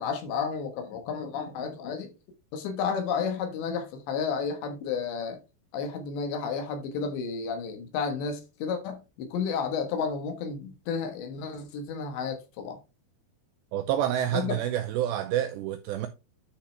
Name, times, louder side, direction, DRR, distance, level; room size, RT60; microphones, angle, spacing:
voice 1, 0.0-2.1 2.5-5.4 5.7-12.8 14.3-14.6, left 6 dB, 70° left, 3.3 m, -32 dB
voice 2, 13.7-16.1, right 11 dB, 85° right, 2.5 m, -28 dB
10.0 x 5.9 x 3.3 m
omnidirectional pair, 5.6 m